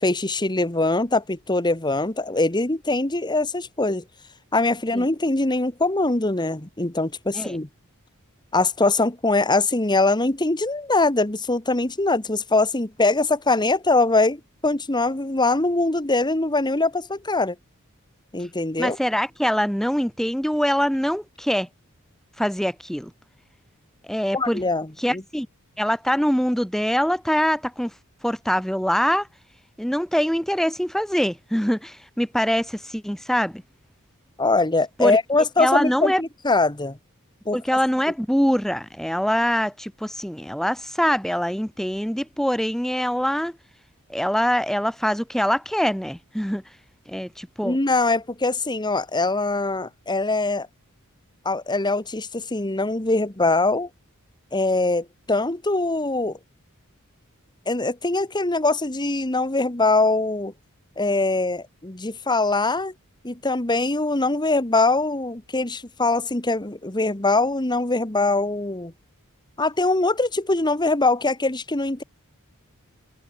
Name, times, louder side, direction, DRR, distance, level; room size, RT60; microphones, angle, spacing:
voice 1, 0.0-4.0 4.5-7.7 8.5-17.5 18.3-19.0 24.3-25.2 34.4-37.0 37.4-37.6 47.6-50.7 51.4-53.9 54.5-56.4 57.7-60.5 61.0-62.9 63.2-68.9 69.6-72.0, left 2 dB, 20° left, 1.5 m, -22 dB
voice 2, 18.8-21.7 22.4-23.1 24.0-24.6 25.0-25.5 25.8-27.9 28.2-29.3 29.8-33.6 35.0-35.2 35.6-36.2 37.5-43.6 44.1-46.6 47.1-47.8, equal, ahead, 1.7 m, -24 dB
head